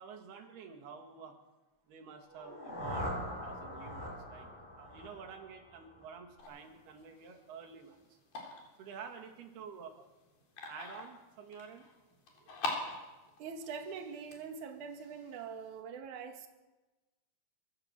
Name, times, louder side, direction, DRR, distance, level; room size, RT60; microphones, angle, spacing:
voice 1, 0.0-1.4 1.9-4.5 4.8-8.2 8.8-9.9 10.7-11.9, right 6 dB, 75° right, 4 dB, 4.0 m, -49 dB
sound 1, 2.2-6.2, equal, 10° left, 5.9 m, -42 dB
sound 2, 6.4-15.8, left 3 dB, 65° left, 5.4 m, -46 dB
voice 2, 12.6-13.0 13.4-16.5, right 6 dB, 55° right, 4 dB, 3.0 m, -44 dB
25.0 x 14.0 x 7.7 m, 1.1 s
omnidirectional pair, 4.7 m